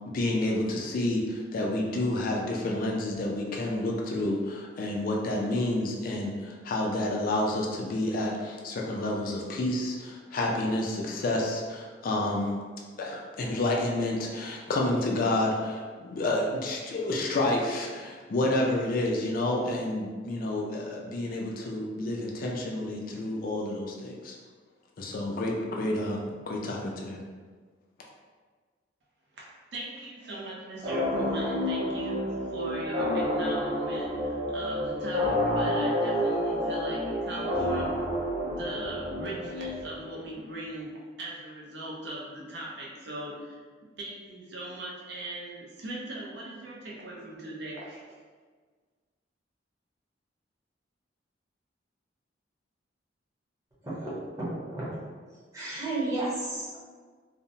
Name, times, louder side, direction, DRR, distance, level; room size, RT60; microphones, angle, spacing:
voice 1, 0.1-12.5 13.0-24.4 25.0-27.2, left 1 dB, 50° left, -1 dB, 0.4 m, -29 dB
voice 2, 29.7-38.0 38.5-43.6 44.0-48.0, right 1 dB, 65° right, -3 dB, 0.5 m, -39 dB
sound 1, 30.8-40.3, left 1 dB, 35° right, 1.2 m, -29 dB
voice 3, 53.8-55.0 55.5-56.8, right 2 dB, 20° right, -8 dB, 0.7 m, -33 dB
2.7 x 2.0 x 2.6 m, 1.5 s
head